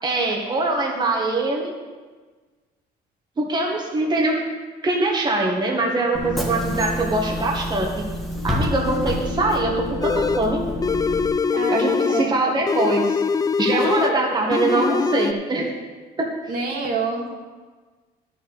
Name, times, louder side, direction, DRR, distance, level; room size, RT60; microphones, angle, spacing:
voice 1, 0.0-1.7 3.4-4.3 4.8-8.0 8.4-10.6 11.7-13.2 13.6-15.7 16.2-16.3, right 2 dB, 25° right, -1 dB, 1.7 m, -23 dB
Bus / Engine, 6.1-11.3, equal, ahead, 1.5 m, -28 dB
sound 1, 8.3-14.0, left 6 dB, 55° left, 1.5 m, -35 dB
sound 2, 10.0-10.5 10.8-12.3 12.7-14.2 14.5-15.3, left 5 dB, 20° left, 0.4 m, -23 dB
voice 2, 11.5-12.6 13.7-14.3 16.5-17.4, right 3 dB, 60° right, 0 dB, 2.2 m, -28 dB
11.0 x 6.2 x 6.8 m, 1.4 s
cardioid pair, 110°, 17 cm